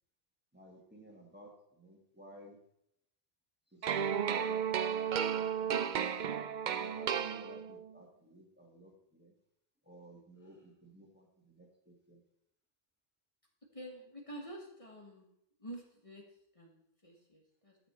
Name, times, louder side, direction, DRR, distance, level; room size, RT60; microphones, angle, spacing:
voice 1, 0.5-2.6 3.7-4.6 6.8-9.3 9.9-12.2, equal, 10° right, -1 dB, 1.7 m, -56 dB
sound 1, 3.8-7.9, right 8 dB, 55° right, 0.6 m, -33 dB
voice 2, 13.7-15.3 15.6-17.8, right 1 dB, 35° left, -1 dB, 1.6 m, -49 dB
12.0 x 7.2 x 4.3 m, 0.76 s
omnidirectional pair, 1.0 m